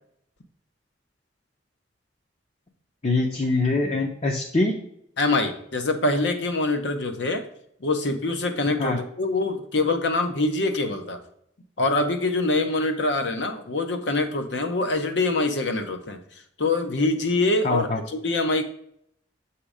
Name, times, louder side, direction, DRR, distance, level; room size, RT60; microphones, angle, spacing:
voice 1, 3.0-4.7 8.8-9.0 17.6-18.0, left 2 dB, 35° left, 0 dB, 0.6 m, -23 dB
voice 2, 5.2-7.4 7.8-11.2 11.8-16.2 16.6-18.6, left 2 dB, 70° left, 6 dB, 0.8 m, -24 dB
8.0 x 2.9 x 4.9 m, 0.71 s
head